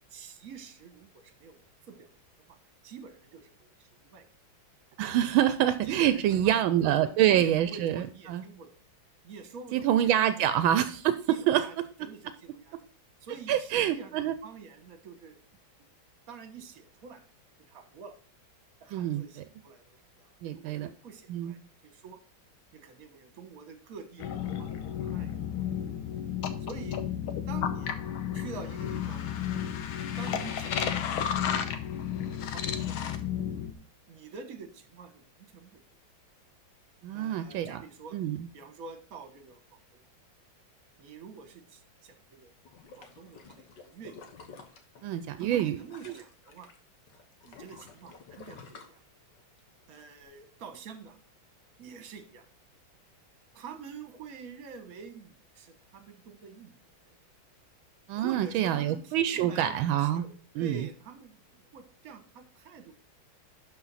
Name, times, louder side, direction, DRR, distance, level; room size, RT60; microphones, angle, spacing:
voice 1, 0.0-1.6 1.9-2.1 2.8-4.3 5.8-8.8 9.2-10.4 11.3-11.7 12.0-12.7 13.2-15.4 16.3-17.2 17.7-18.2 18.8-21.6 21.8-22.2 22.7-25.6 26.6-27.0 27.5-27.9 28.3-29.2 30.2-30.8 31.1-31.7 32.3-33.0 34.1-35.8 37.1-38.2 38.5-40.0 41.0-42.5 42.9-44.1 45.4-46.7 47.4-49.0 49.9-51.2 51.8-52.4 53.5-56.8 57.0-57.2 58.1-62.9, right 5 dB, 50° right, 8 dB, 1.5 m, -47 dB
voice 2, 5.0-8.4 9.7-11.9 13.5-14.3 18.9-19.2 20.4-20.9 21.3-21.5 37.0-37.8 38.1-38.5 45.0-45.8 46.1-46.2 58.1-60.2 60.6-60.9, right 11 dB, 80° right, 12 dB, 1.3 m, -26 dB
sound 1, 24.2-33.7, left 9 dB, 85° left, 1.6 m, -32 dB
sound 2, 42.6-46.8 47.1-49.6 50.0-50.1, left 5 dB, 60° left, 1.8 m, -50 dB
11.5 x 4.5 x 4.0 m, 0.42 s
omnidirectional pair, 2.2 m